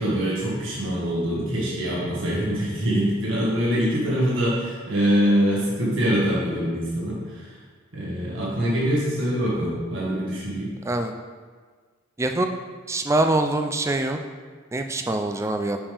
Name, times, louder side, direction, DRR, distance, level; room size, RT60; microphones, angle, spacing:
voice 1, 0.0-7.5 7.9-10.7, equal, 75° right, -6 dB, 1.7 m, -24 dB
voice 2, 12.2-12.5 12.9-14.2 14.7-15.8, right 2 dB, 15° right, 5 dB, 0.3 m, -24 dB
7.1 x 5.3 x 3.4 m, 1.5 s
head